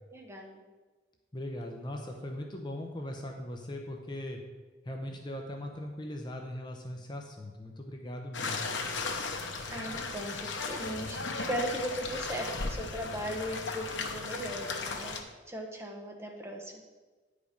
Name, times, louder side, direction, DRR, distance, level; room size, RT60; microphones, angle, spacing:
voice 1, 0.1-0.6 9.7-15.2 15.5-16.8, equal, 15° right, 1 dB, 1.0 m, -38 dB
voice 2, 1.3-4.4 4.8-8.9, left 1 dB, 25° left, 2 dB, 0.7 m, -39 dB
sound 1, 8.3-15.2, left 3 dB, 85° left, 0.9 m, -36 dB
9.7 x 5.1 x 5.2 m, 1.3 s
head